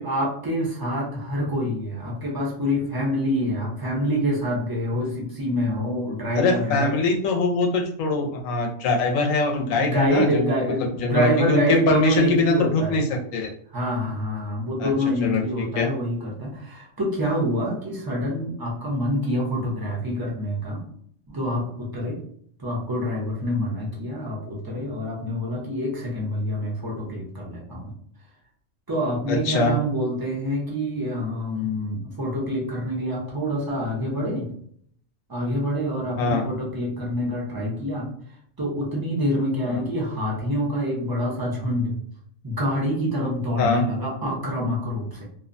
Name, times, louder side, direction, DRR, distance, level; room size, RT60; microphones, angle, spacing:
voice 1, 0.0-6.9 9.5-13.0 13.7-20.8 21.3-22.2 22.6-27.9 28.9-34.5 35.3-38.1 38.6-42.0 42.4-45.2, equal, 25° right, -4 dB, 0.5 m, -26 dB
voice 2, 6.4-13.5 14.8-14.9 15.2-15.9 29.3-29.7 36.2-36.5 39.7-39.8 43.6-43.9, left 3 dB, 85° left, 2 dB, 1.0 m, -23 dB
2.8 x 2.1 x 2.5 m, 0.63 s
omnidirectional pair, 1.3 m